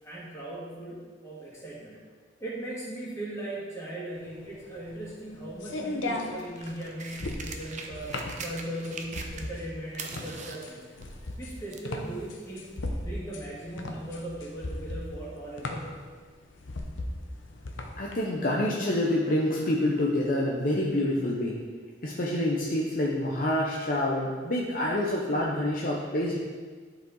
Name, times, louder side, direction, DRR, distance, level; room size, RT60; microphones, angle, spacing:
voice 1, 0.0-2.0 2.4-10.8 11.4-12.7 13.0-15.9, right 1 dB, 15° left, -7 dB, 2.3 m, -38 dB
sound 1, 4.3-18.1, left 1 dB, 85° left, 0.8 m, -37 dB
sound 2, 6.1-9.7 9.9-12.0 12.8-12.9, right 4 dB, 40° right, 0.7 m, -42 dB
voice 2, 18.0-21.6 22.0-26.4, left 1 dB, 50° left, -3 dB, 0.8 m, -27 dB
11.0 x 4.9 x 3.9 m, 1.5 s
head